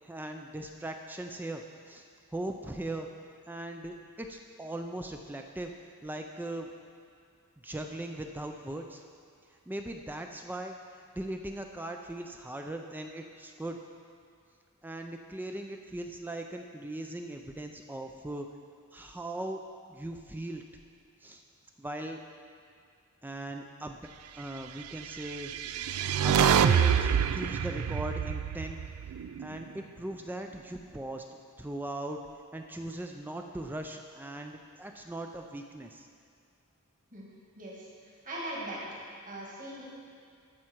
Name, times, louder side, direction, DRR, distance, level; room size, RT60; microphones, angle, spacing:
voice 1, 0.0-2.1 2.3-3.1 3.5-5.7 6.0-6.7 7.6-9.0 9.7-13.8 14.8-18.5 18.9-19.6 19.9-20.6 21.2-21.4 21.8-22.2 23.2-24.0 24.3-25.5 26.2-28.8 29.4-32.2 32.5-36.1, right 1 dB, 10° right, 4 dB, 0.3 m, -39 dB
sound 1, 25.3-29.6, right 8 dB, 85° right, 0.4 m, -26 dB
voice 2, 37.6-38.8 39.2-39.8, right 1 dB, 35° right, -5 dB, 1.9 m, -40 dB
13.5 x 5.7 x 4.5 m, 2.3 s
head